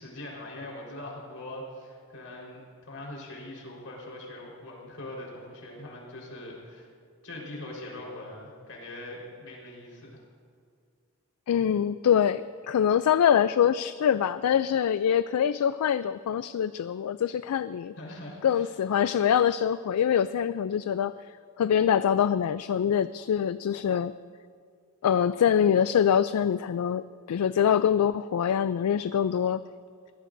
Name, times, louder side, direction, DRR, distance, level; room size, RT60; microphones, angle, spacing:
voice 1, 0.0-6.9 7.2-10.2 18.0-18.7, left 1 dB, 70° left, -3 dB, 4.3 m, -42 dB
voice 2, 11.5-17.9 18.4-21.1 21.6-24.1 25.0-29.6, left 8 dB, 90° left, 14 dB, 0.3 m, -24 dB
23.0 x 17.5 x 2.6 m, 2.1 s
head